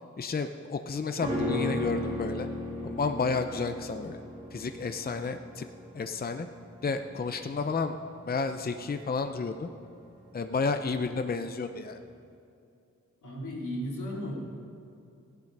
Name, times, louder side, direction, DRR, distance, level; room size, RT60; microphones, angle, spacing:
voice 1, 0.2-2.5 2.8-4.2 4.5-5.7 5.9-6.5 6.8-8.0 8.3-9.7 10.3-12.0, left 4 dB, 30° left, 7 dB, 0.6 m, -31 dB
sound 1, 1.2-10.6 10.9-11.0, left 1 dB, 15° right, 3.1 m, -36 dB
voice 2, 13.2-14.3, equal, 85° left, -4 dB, 3.0 m, -35 dB
15.5 x 10.5 x 5.3 m, 2.6 s
wide cardioid pair, 80°, 30 cm